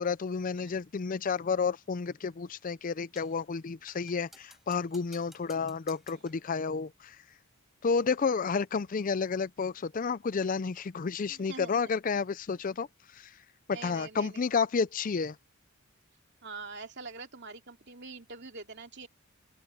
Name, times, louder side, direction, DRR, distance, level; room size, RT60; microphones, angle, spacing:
voice 1, 0.0-7.2 7.8-12.9 13.1-13.3 13.7-15.4, left 5 dB, 35° left, 0.4 m, -31 dB
sound 1, 3.2-3.4 3.9-6.5, equal, ahead, 4.4 m, -57 dB
voice 2, 11.3-11.8 13.7-14.5 16.4-19.1, right 4 dB, 50° right, 2.8 m, -44 dB
open air
head